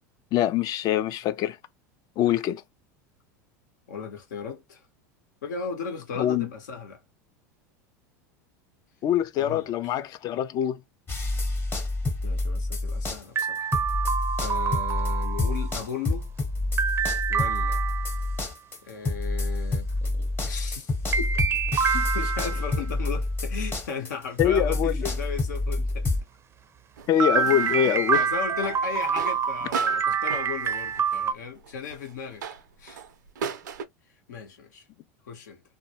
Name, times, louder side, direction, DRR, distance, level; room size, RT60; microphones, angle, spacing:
voice 1, 0.3-1.6 2.2-2.6 6.2-6.5 9.0-10.8 24.4-25.1 27.1-28.2, left 11 dB, 45° left, 0.3 m, -24 dB
voice 2, 3.9-4.8 5.4-7.0 9.3-9.9 12.2-13.7 14.4-16.3 17.3-17.8 18.8-21.4 21.9-26.2 27.4-32.4 32.8-33.0 34.3-34.8 35.2-35.6, left 6 dB, 80° left, 0.8 m, -36 dB
sound 1, 11.1-13.4 13.7-26.2, left 2 dB, 25° left, 0.8 m, -28 dB
sound 2, 13.4-15.8 16.8-18.4 21.1-22.8 27.2-31.3, right 6 dB, 25° right, 0.4 m, -27 dB
sound 3, 27.0-33.8, right 6 dB, 85° right, 0.5 m, -38 dB
2.2 x 2.1 x 2.8 m
hypercardioid pair, 95°, 9 cm